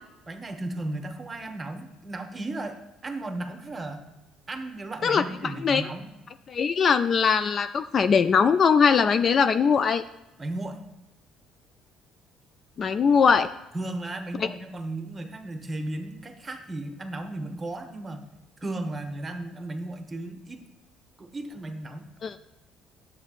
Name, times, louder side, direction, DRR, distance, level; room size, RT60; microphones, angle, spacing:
voice 1, 0.3-4.1 4.5-6.1 10.4-10.8 13.7-18.3 18.6-20.6 21.2-22.1, right 2 dB, 20° right, 5 dB, 0.9 m, -35 dB
voice 2, 6.5-10.0 12.8-13.5 22.2-22.3, left 6 dB, 40° left, 11 dB, 0.3 m, -21 dB
9.7 x 7.6 x 2.4 m, 0.95 s
cardioid pair, 110°, 0 cm